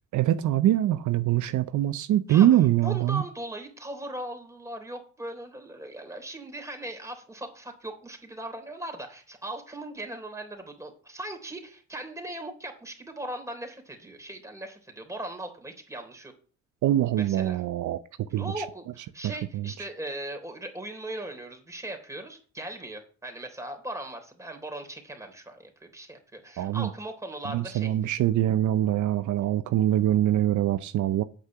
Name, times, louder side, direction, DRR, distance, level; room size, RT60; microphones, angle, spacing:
voice 1, 0.1-3.2 16.8-18.0 18.3-18.6 19.2-19.7 26.6-26.9 27.5-31.2, right 12 dB, 75° right, 0.7 m, -24 dB
voice 2, 2.8-16.3 17.2-17.6 18.3-28.1, right 1 dB, 10° right, 3.4 m, -39 dB
8.7 x 6.1 x 7.8 m
cardioid pair, 90°, 30 cm